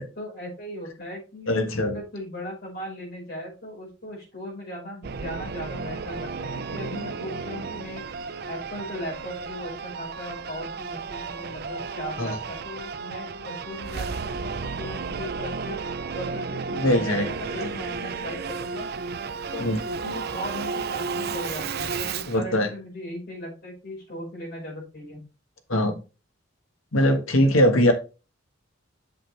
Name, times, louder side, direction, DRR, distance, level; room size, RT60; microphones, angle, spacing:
voice 1, 0.2-1.5 1.8-8.0 8.4-15.8 16.1-18.9 19.5-25.2, equal, 50° left, -4 dB, 5.1 m, -38 dB
voice 2, 1.5-1.9 12.2-12.4 16.7-17.3 17.6-17.7 19.6-19.8 22.3-22.7 25.7-25.9 26.9-27.9, equal, 90° left, 5 dB, 1.5 m, -21 dB
Singing / Musical instrument, 5.0-22.4, right 5 dB, 50° right, 0.5 m, -33 dB
7.8 x 6.4 x 3.3 m, 0.31 s
head